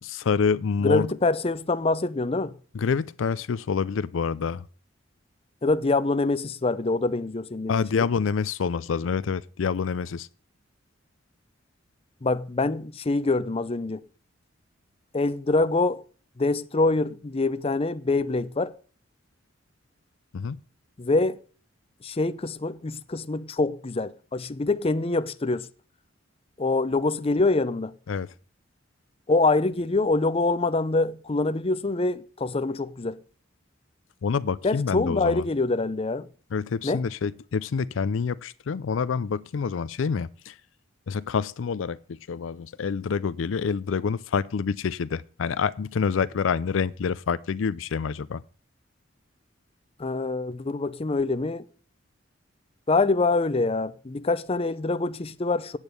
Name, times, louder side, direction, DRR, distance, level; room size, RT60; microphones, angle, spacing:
voice 1, 0.0-1.1 2.7-4.7 7.7-10.3 20.3-20.6 28.1-28.3 34.2-35.4 36.5-40.5 41.1-48.4, left 5 dB, 80° left, 0.4 m, -27 dB
voice 2, 0.8-2.5 5.6-8.1 12.2-14.0 15.1-16.0 16.4-18.7 21.0-21.4 22.0-25.7 26.6-27.9 29.3-33.2 34.6-36.3 36.8-37.0 50.0-51.6 52.9-55.8, left 3 dB, 30° left, 0.6 m, -25 dB
8.9 x 8.1 x 6.7 m
head